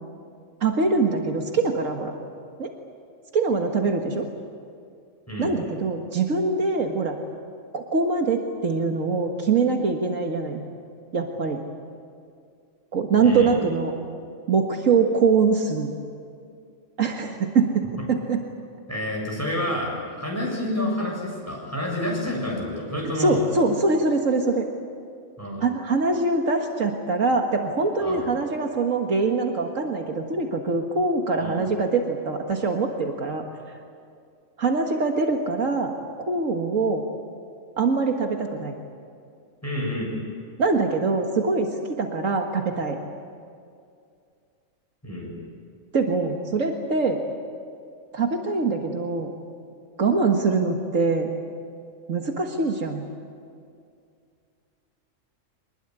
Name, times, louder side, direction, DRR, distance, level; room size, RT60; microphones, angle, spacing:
voice 1, 0.6-2.1 2.6-2.7 3.3-4.3 5.4-7.2 7.7-10.6 11.1-11.6 12.9-13.9 14.5-16.0 17.0-18.4 23.2-24.7 25.6-33.4 34.6-35.9 36.3-37.0 37.8-38.7 40.6-43.0 45.9-47.2 48.1-49.3 50.0-51.3 52.1-53.1, right 4 dB, 80° right, 3 dB, 2.0 m, -23 dB
voice 2, 13.2-13.5 18.9-23.4 25.4-25.6 28.0-28.3 31.4-31.6 39.6-40.1 45.0-45.3, left 1 dB, 10° left, -2 dB, 7.5 m, -29 dB
25.0 x 20.0 x 9.9 m, 2.3 s
omnidirectional pair, 1.3 m